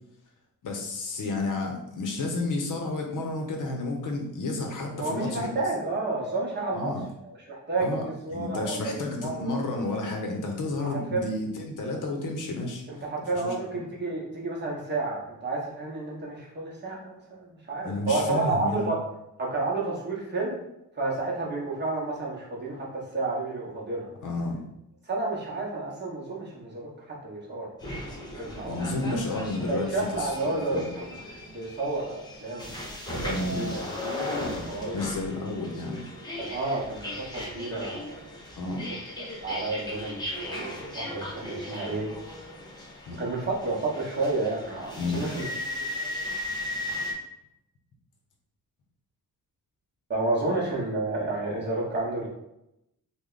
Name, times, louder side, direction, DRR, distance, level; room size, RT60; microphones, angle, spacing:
voice 1, 0.6-5.5 6.7-7.0 7.8-12.8 13.3-13.8 17.8-18.9 24.2-24.6 28.7-30.9 33.3-33.7 34.9-36.0 38.6-38.8 43.1-43.2 45.0-45.3, left 2 dB, 60° left, 1 dB, 0.7 m, -31 dB
voice 2, 5.0-6.9 7.2-9.6 10.8-11.3 12.9-19.0 19.4-20.6 21.0-24.1 25.1-27.7 28.4-29.2 29.6-31.2 31.5-32.7 33.2-35.0 36.4-38.3 39.4-42.1 43.2-45.5 50.1-52.3, right 2 dB, 30° right, -4 dB, 0.8 m, -31 dB
sound 1, 27.8-47.1, left 1 dB, 10° left, 0.5 m, -37 dB
3.2 x 2.2 x 3.7 m, 0.84 s
wide cardioid pair, 165°, 35 cm